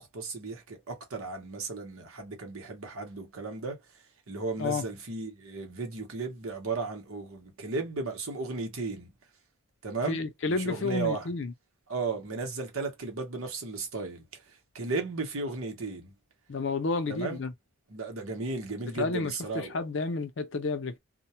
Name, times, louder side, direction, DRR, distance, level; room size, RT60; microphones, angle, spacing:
voice 1, 0.0-3.8 4.3-9.1 9.8-11.3 11.9-14.3 14.7-16.1 17.1-17.4 17.9-19.8, right 3 dB, 80° right, 0.9 m, -35 dB
voice 2, 10.1-11.5 16.5-17.5 19.0-21.0, left 3 dB, 60° left, 0.5 m, -31 dB
2.2 x 2.2 x 2.7 m
head